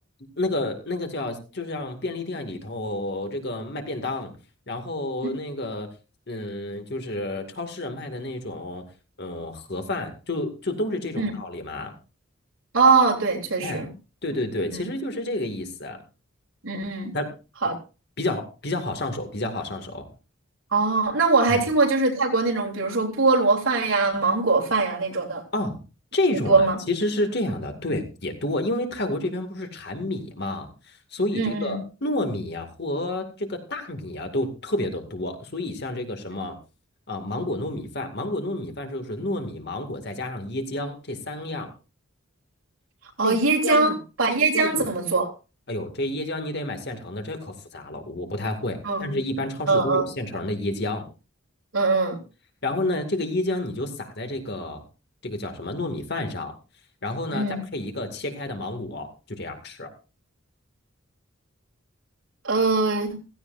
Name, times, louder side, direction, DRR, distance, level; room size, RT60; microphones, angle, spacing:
voice 1, 0.4-4.3 4.7-5.9 6.3-8.9 9.2-11.9 13.6-13.9 14.2-16.0 17.1-17.3 18.2-20.1 21.5-21.6 25.5-25.8 26.1-36.6 37.1-41.7 43.2-44.0 44.5-44.9 45.7-51.1 52.6-54.8 55.2-56.5 57.0-57.4 57.7-59.9, left 1 dB, 55° left, 5 dB, 2.3 m, -30 dB
voice 2, 12.7-13.9 14.7-14.9 16.6-17.1 17.6-17.8 20.7-25.4 26.5-26.8 31.3-31.8 43.2-43.9 44.2-45.3 48.8-49.1 49.7-50.0 51.7-52.2 57.3-57.6 62.4-63.2, right 3 dB, 85° right, -1 dB, 3.5 m, -22 dB
16.0 x 15.5 x 2.6 m, 0.32 s
head